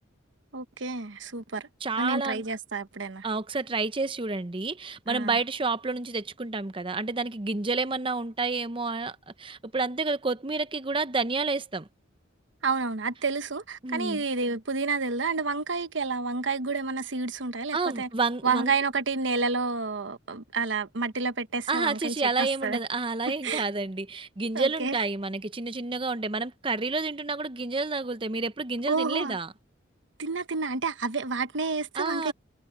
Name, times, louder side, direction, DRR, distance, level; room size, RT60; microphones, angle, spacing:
voice 1, 0.5-1.7 2.0-3.3 5.1-5.4 12.6-18.1 18.4-22.8 23.4-23.6 24.5-25.0 28.9-29.4 30.2-32.3, right 4 dB, 70° right, 1.2 m, -29 dB
voice 2, 1.8-2.4 3.2-11.9 13.8-14.2 17.7-18.7 21.7-29.5 32.0-32.3, right 3 dB, 25° right, 0.7 m, -29 dB
head